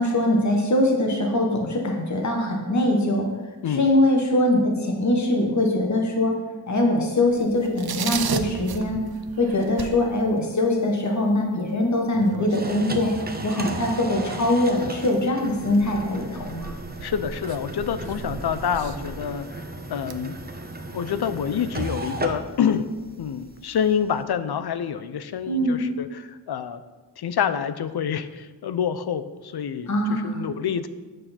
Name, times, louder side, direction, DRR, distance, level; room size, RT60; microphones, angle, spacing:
voice 1, 0.0-3.3 3.7-6.3 6.7-9.0 9.4-13.1 13.4-16.8 25.5-25.8 29.9-30.4, left 1 dB, 45° left, 1 dB, 1.3 m, -22 dB
sound 1, 7.3-10.5 10.8-10.9 11.3-14.4 14.8-22.2 22.6-22.7 22.9-23.7, right 7 dB, 60° right, 0.6 m, -37 dB
sound 2, 12.5-24.2, right 2 dB, 25° right, 0.8 m, -36 dB
voice 2, 17.0-20.4 20.9-22.9 23.2-26.8 27.2-30.9, left 8 dB, 65° left, 12 dB, 0.6 m, -27 dB
7.9 x 6.4 x 4.3 m, 1.3 s
wide cardioid pair, 90°, 42 cm